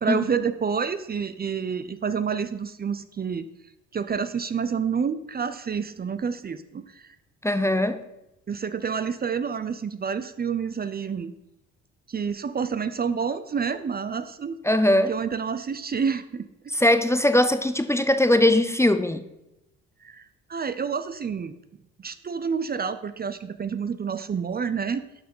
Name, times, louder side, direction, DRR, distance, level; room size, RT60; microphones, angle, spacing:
voice 1, 0.0-3.5 3.9-7.1 8.5-11.3 12.1-14.6 15.1-16.5 20.0-20.2 20.5-21.5 22.0-25.0, right 6 dB, 30° right, 0.6 m, -28 dB
voice 2, 7.4-8.0 14.6-15.1 16.7-19.2, left 1 dB, 10° left, 0.6 m, -20 dB
11.5 x 5.7 x 5.4 m
cardioid pair, 90°, 30 cm